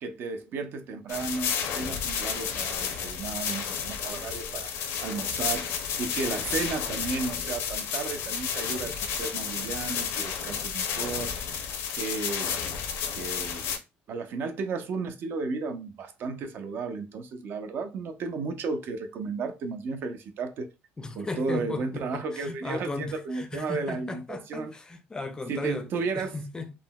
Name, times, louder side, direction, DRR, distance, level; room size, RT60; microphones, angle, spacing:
voice 1, 0.0-11.7 12.0-12.5 13.2-13.8 14.1-20.7 21.2-24.7 25.5-26.4, right 4 dB, 55° right, 0.5 m, -34 dB
sound 1, 1.1-13.8, left 7 dB, 80° left, 0.6 m, -31 dB
voice 2, 21.0-26.7, left 3 dB, 15° left, 0.4 m, -36 dB
3.6 x 2.0 x 2.2 m
cardioid pair, 120°, 4 cm